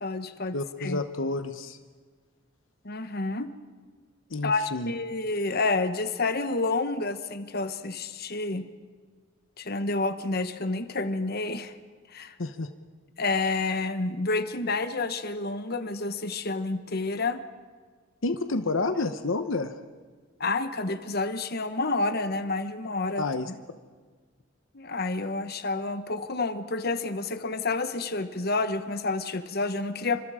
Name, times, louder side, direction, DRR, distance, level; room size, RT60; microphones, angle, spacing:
voice 1, 0.0-0.5 0.8-1.0 2.8-3.5 4.4-8.6 9.6-11.7 12.1-12.3 13.2-17.4 20.4-23.2 24.7-30.2, left 3 dB, 50° left, 10 dB, 1.2 m, -29 dB
voice 2, 0.5-1.8 4.3-4.9 12.4-12.7 18.2-19.7 23.2-23.5, left 3 dB, 75° left, 9 dB, 1.0 m, -29 dB
29.5 x 25.5 x 5.0 m, 1.5 s
head